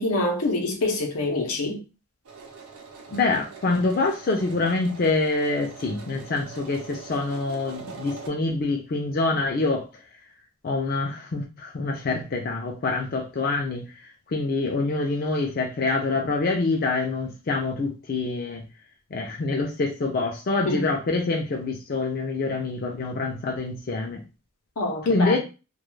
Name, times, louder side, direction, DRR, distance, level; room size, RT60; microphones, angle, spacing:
voice 1, 0.0-1.8 20.6-20.9 24.8-25.4, left 2 dB, 85° left, 0.7 m, -26 dB
sound 1, 2.2-8.3, right 5 dB, 80° right, 0.6 m, -43 dB
voice 2, 3.1-9.9 10.6-13.8 14.3-18.6 19.1-24.2 25.0-25.4, left 3 dB, 40° left, 0.4 m, -26 dB
2.3 x 2.2 x 3.1 m
head